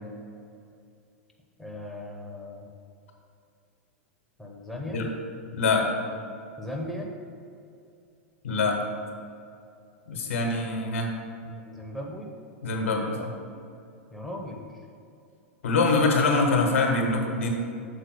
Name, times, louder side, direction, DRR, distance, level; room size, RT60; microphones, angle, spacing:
voice 1, 1.6-2.7 4.4-5.0 6.6-7.1 11.6-12.3 14.1-14.9, left 1 dB, ahead, -1 dB, 1.0 m, -37 dB
voice 2, 5.5-5.9 8.4-8.8 10.1-11.1 12.6-13.3 15.6-17.5, left 3 dB, 70° left, 2 dB, 1.3 m, -24 dB
6.8 x 4.0 x 6.3 m, 2.5 s
figure-of-eight pair, 95°, 7 cm